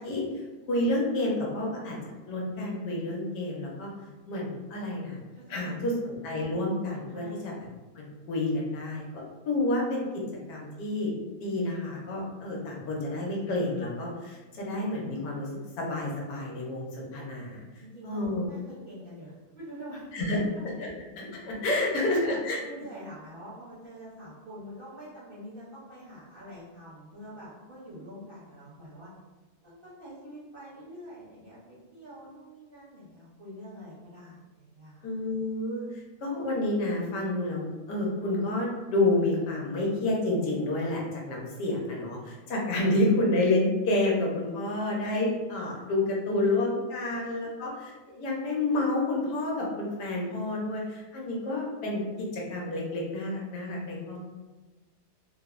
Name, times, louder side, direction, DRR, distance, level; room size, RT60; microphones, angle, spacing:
voice 1, 0.0-2.0 2.3-3.9 4.3-5.2 5.5-7.5 7.9-10.2 10.5-11.1 11.4-15.5 15.8-17.6 18.0-18.4 20.1-20.4 20.8-20.9 21.2-22.6 35.0-47.7 48.1-54.3, left 2 dB, 80° left, -3 dB, 1.3 m, -29 dB
voice 2, 5.5-5.9 7.1-7.4 17.8-20.4 21.7-29.1 29.6-35.0, equal, 45° right, -10 dB, 0.8 m, -45 dB
3.3 x 2.0 x 2.4 m, 1.2 s
omnidirectional pair, 1.8 m